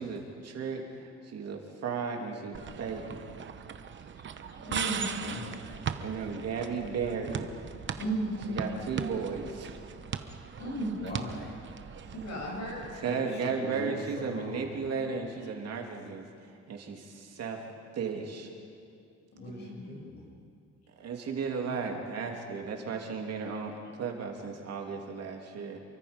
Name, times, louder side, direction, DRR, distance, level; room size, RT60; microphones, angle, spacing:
voice 1, 0.0-3.3 5.9-7.5 8.5-9.7 12.0-12.1 12.9-16.3 16.7-17.6 17.9-18.5 20.9-25.8, right 5 dB, 55° right, 2 dB, 2.7 m, -35 dB
sound 1, 2.5-13.0, right 7 dB, 40° right, 0.9 m, -39 dB
voice 2, 4.5-5.1 8.0-8.7 10.1-11.0 12.1-13.2 19.3-19.9, right 1 dB, 65° left, -2 dB, 7.7 m, -36 dB
voice 3, 5.1-5.7 11.0-11.6 13.0-14.8 19.4-20.2, left 1 dB, 35° left, -1 dB, 6.4 m, -41 dB
29.0 x 24.0 x 5.2 m, 2.4 s
cardioid pair, 165°, 29 cm